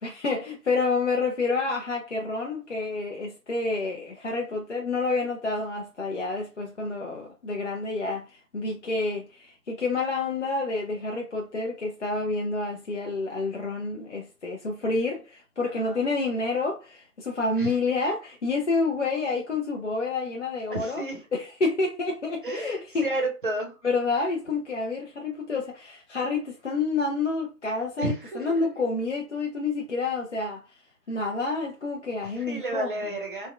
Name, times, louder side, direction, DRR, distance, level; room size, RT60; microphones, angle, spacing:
voice 1, 0.0-21.0 21.3-23.1 23.8-30.8 31.1-32.9, left 3 dB, 50° left, 0.5 m, -29 dB
voice 2, 15.7-16.0 17.6-17.7 20.7-21.2 22.4-23.7 28.0-28.7 32.4-33.5, right 2 dB, 35° right, 0.7 m, -32 dB
3.3 x 2.1 x 2.3 m
figure-of-eight pair, 155°, 47 cm